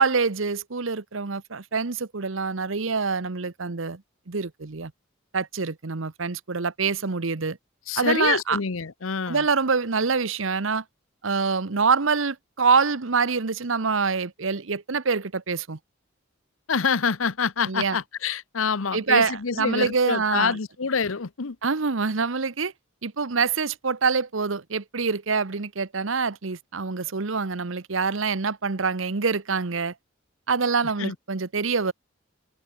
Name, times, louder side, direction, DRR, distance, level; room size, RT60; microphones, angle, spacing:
voice 1, 0.0-4.0 4.3-4.9 5.3-7.6 8.0-8.6 9.3-10.8 11.2-15.8 17.7-18.0 18.9-20.6 21.6-22.7 23.0-29.9 30.5-31.9, right 5 dB, 70° right, 1.0 m, -25 dB
voice 2, 7.9-9.5 16.7-21.6 31.0-31.1, left 5 dB, 85° left, 0.9 m, -26 dB
head